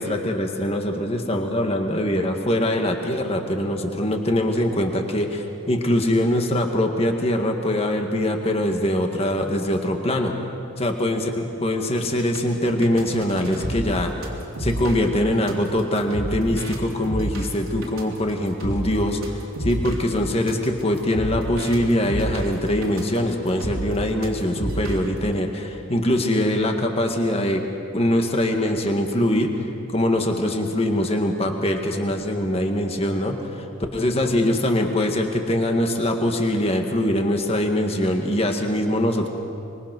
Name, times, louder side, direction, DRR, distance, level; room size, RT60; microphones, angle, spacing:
voice 1, 0.0-10.4 10.8-14.1 14.6-27.6 27.9-29.5 29.9-33.7 33.9-39.3, left 1 dB, 30° left, 3 dB, 1.9 m, -23 dB
sound 1, 11.9-25.2, right 1 dB, 80° right, 3.8 m, -31 dB
24.5 x 22.5 x 6.3 m, 2.6 s
head